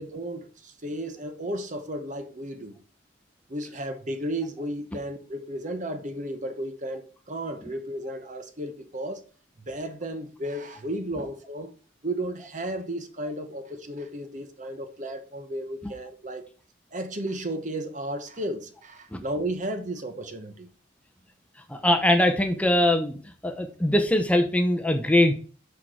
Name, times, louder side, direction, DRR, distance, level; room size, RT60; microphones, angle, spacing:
voice 1, 0.0-2.8 3.5-9.2 9.6-11.7 12.0-16.5 16.9-20.7, right 1 dB, 40° right, 0.9 m, -34 dB
voice 2, 21.7-23.2 23.4-25.3, left 1 dB, 5° left, 0.7 m, -22 dB
6.6 x 4.8 x 6.1 m
head